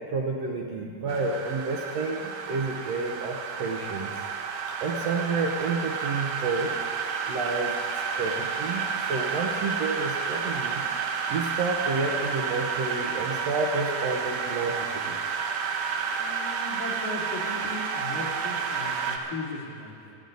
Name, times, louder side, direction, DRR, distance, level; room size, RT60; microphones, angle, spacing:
voice 1, 0.1-4.1 4.8-6.7 7.3-7.8 8.1-10.8 11.3-15.2, right 3 dB, 65° right, 0 dB, 1.8 m, -30 dB
sound 1, 1.1-19.2, right 6 dB, 80° right, 2.5 m, -31 dB
voice 2, 16.1-20.2, left 3 dB, 80° left, -6 dB, 4.5 m, -38 dB
26.0 x 9.8 x 4.0 m, 2.5 s
omnidirectional pair, 3.7 m